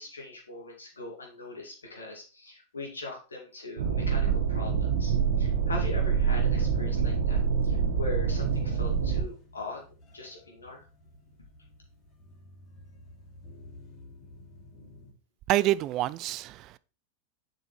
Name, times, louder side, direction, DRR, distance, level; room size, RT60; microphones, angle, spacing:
voice 1, 0.0-9.8 10.1-10.8, left 2 dB, 90° left, 2.6 m, -41 dB
sound 1, 3.8-9.2, right 6 dB, 75° right, 1.5 m, -26 dB
sound 2, 5.3-15.1, left 1 dB, 40° left, 3.1 m, -50 dB
voice 2, 15.5-16.8, right 15 dB, 45° right, 0.5 m, -27 dB
7.2 x 5.5 x 4.5 m
hypercardioid pair, 95°, 0 cm